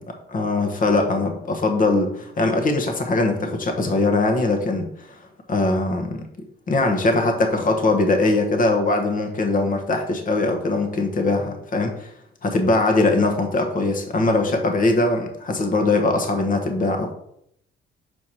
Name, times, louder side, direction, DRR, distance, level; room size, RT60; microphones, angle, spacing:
voice 1, 0.0-5.2 5.5-6.3 6.7-12.1 12.4-17.1, left 2 dB, 45° left, 4 dB, 1.2 m, -21 dB
6.4 x 4.6 x 4.4 m, 0.73 s
cardioid pair, 90°, 20 cm